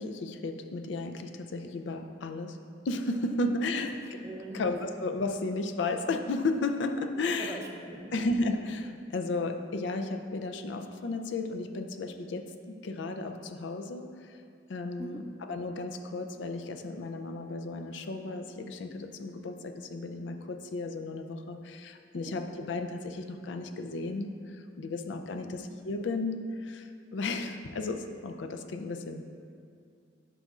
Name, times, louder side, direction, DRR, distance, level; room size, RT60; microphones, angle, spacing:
voice 1, 0.0-2.6 2.9-4.0 4.5-7.6 8.1-14.4 14.7-15.2 15.5-29.3, left 2 dB, 70° left, 7 dB, 0.4 m, -34 dB
voice 2, 3.1-3.7 4.2-4.6 7.2-8.1 15.0-15.2 22.1-22.4 25.3-25.6, right 1 dB, 15° right, -1 dB, 0.5 m, -42 dB
9.7 x 5.4 x 2.4 m, 2.3 s
head